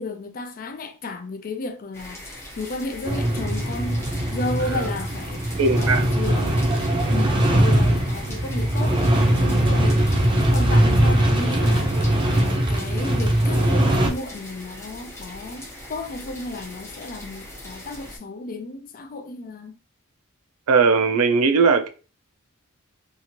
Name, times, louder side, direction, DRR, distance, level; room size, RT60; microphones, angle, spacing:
voice 1, 0.0-5.4 5.8-6.6 7.1-10.1 10.4-19.7, left 2 dB, 40° left, 0.4 m, -33 dB
sound 1, 1.9-18.2, left 1 dB, 10° left, 0.8 m, -40 dB
sound 2, 3.0-14.1, right 1 dB, 25° right, 0.6 m, -20 dB
voice 2, 5.6-6.1 20.7-21.9, right 4 dB, 85° right, 0.5 m, -19 dB
2.8 x 2.5 x 2.9 m
head